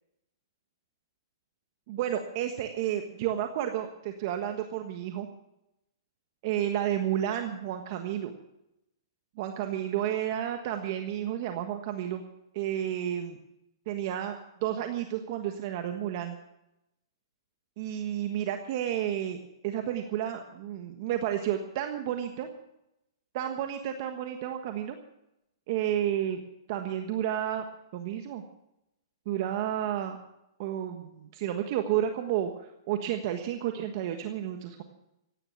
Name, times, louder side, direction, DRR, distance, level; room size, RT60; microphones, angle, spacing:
voice 1, 1.9-5.3 6.4-8.3 9.4-12.2 12.5-13.4 13.9-14.4 14.6-16.4 17.8-22.5 23.3-25.0 25.7-26.4 26.7-27.6 27.9-28.4 29.2-30.2 30.6-34.8, right 11 dB, 45° right, 6 dB, 1.4 m, -31 dB
16.0 x 11.0 x 7.2 m, 0.86 s
hypercardioid pair, 150°, 2 cm